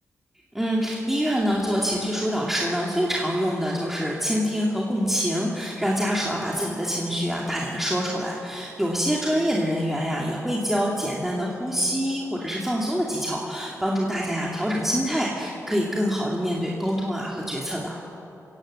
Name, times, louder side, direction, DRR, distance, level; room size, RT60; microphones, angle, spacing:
voice 1, 0.5-18.0, equal, 5° right, -4 dB, 2.5 m, -25 dB
25.5 x 17.0 x 7.6 m, 2.9 s
cardioid pair, 110°, 6 cm